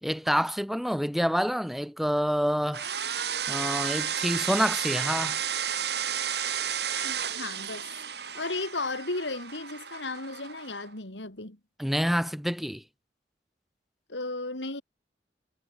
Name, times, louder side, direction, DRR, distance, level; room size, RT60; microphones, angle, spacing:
voice 1, 0.0-2.9 3.5-5.4 11.8-12.8, equal, ahead, 2.9 m, -27 dB
sound 1, 2.7-10.9, right 8 dB, 65° right, 6.6 m, -32 dB
voice 2, 7.0-7.9 8.3-11.6 14.1-14.8, left 2 dB, 85° left, 4.4 m, -34 dB
head